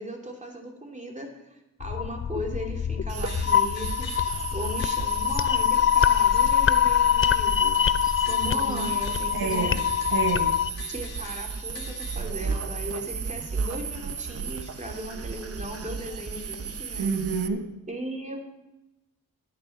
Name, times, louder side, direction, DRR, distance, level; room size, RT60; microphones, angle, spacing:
voice 1, 0.0-4.1 4.5-9.8 10.9-17.1 17.9-18.5, right 1 dB, 20° right, 1 dB, 3.2 m, -37 dB
sound 1, 1.8-10.7, left 9 dB, 35° left, 0.5 m, -24 dB
sound 2, 3.1-17.5, right 5 dB, 40° right, 1.0 m, -34 dB
sound 3, 3.2-4.5 4.8-12.2, left 6 dB, 85° left, 2.2 m, -46 dB
voice 2, 8.5-8.9 9.3-9.8 10.1-10.5 17.0-17.7, right 5 dB, 75° right, 4 dB, 1.4 m, -29 dB
11.0 x 10.0 x 6.0 m, 0.97 s
cardioid pair, 60°, 36 cm